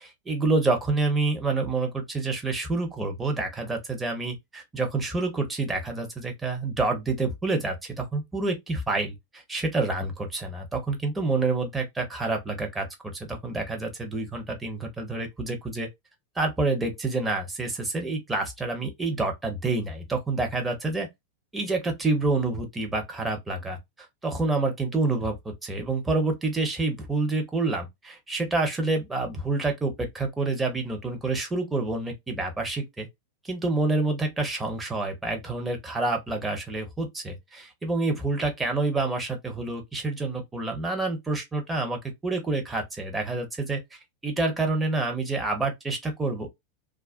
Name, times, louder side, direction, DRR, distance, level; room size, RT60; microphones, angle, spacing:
voice 1, 0.0-15.9 16.4-21.1 21.5-23.8 24.2-33.1 33.4-46.5, right 3 dB, 10° right, 0.8 m, -28 dB
2.4 x 2.1 x 2.4 m
figure-of-eight pair, 90°, 0 cm